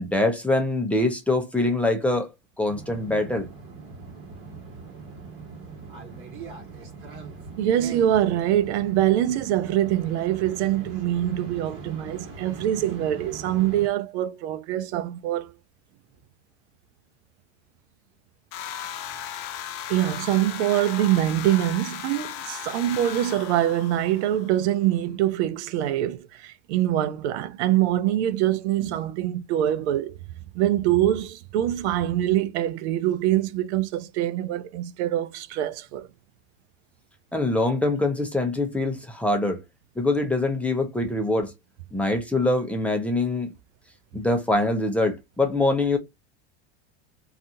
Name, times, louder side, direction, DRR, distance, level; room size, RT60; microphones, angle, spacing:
voice 1, 0.0-2.3 2.6-3.5 37.3-39.6 40.0-41.5 41.9-43.5 44.1-46.0, left 2 dB, 5° left, 0.5 m, -24 dB
sound 1, 2.7-13.9, right 4 dB, 40° right, 1.4 m, -41 dB
voice 2, 7.6-15.5 19.9-30.1 30.5-36.1, right 12 dB, 80° right, 0.5 m, -24 dB
sound 2, 18.5-24.7, left 10 dB, 65° left, 0.6 m, -36 dB
2.7 x 2.4 x 2.5 m
supercardioid pair, 120°, 33 cm